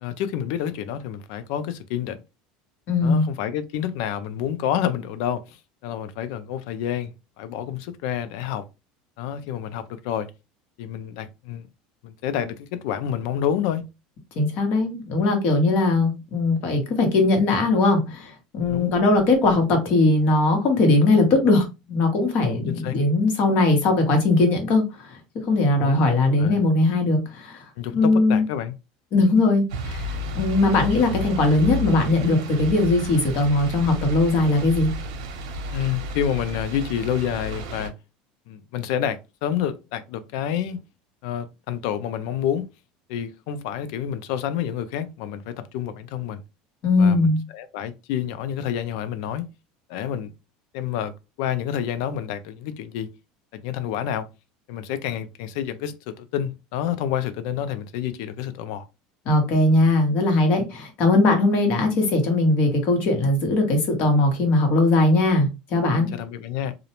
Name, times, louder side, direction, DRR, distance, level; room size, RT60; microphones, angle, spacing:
voice 1, 0.0-2.2 3.0-5.6 5.8-7.1 7.4-8.6 9.2-10.3 10.8-11.7 12.0-13.8 18.7-18.9 22.5-23.0 25.8-26.1 26.4-26.6 27.8-28.7 35.7-37.9 38.5-40.8 41.2-42.7 43.1-46.4 47.0-47.3 47.5-49.5 49.9-50.3 50.7-51.1 51.4-53.1 53.5-54.3 54.7-58.9 66.1-66.8, left 9 dB, 75° left, 0.4 m, -28 dB
voice 2, 2.9-3.2 14.4-21.6 21.9-25.1 25.5-27.6 27.9-28.4 29.1-30.1 30.3-34.9 46.8-47.4 59.2-66.1, left 2 dB, 55° left, 1.1 m, -20 dB
sound 1, 29.7-37.9, left 1 dB, 85° right, 0.7 m, -32 dB
2.4 x 2.1 x 2.9 m
supercardioid pair, 120°, 3 cm